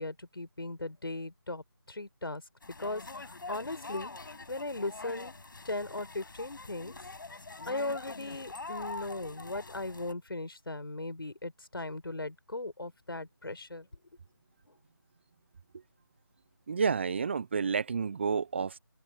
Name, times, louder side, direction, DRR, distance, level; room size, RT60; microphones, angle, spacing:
voice 1, 0.0-2.4 2.8-5.3 5.6-6.9 7.7-13.9, left 2 dB, 75° left, 5.4 m, -38 dB
sound 1, 2.6-10.1, left 3 dB, 60° left, 7.3 m, -44 dB
voice 2, 16.7-18.8, right 5 dB, 30° right, 0.8 m, -30 dB
open air
figure-of-eight pair, 160°, 12 cm